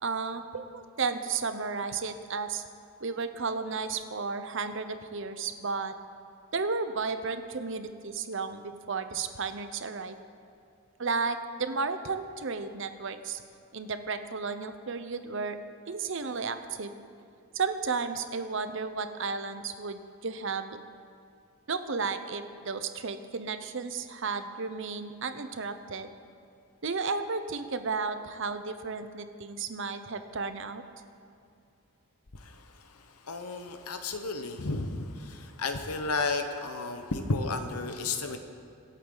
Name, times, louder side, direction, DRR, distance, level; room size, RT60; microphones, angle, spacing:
voice 1, 0.0-2.6 3.0-5.9 6.5-10.2 11.0-13.4 13.7-15.6 15.9-17.0 17.5-20.8 21.7-26.1 26.8-30.8, right 4 dB, 55° right, 10 dB, 0.7 m, -33 dB
voice 2, 33.3-35.1 35.6-38.4, left 3 dB, 90° left, 7 dB, 1.1 m, -32 dB
24.5 x 8.4 x 4.0 m, 2.5 s
head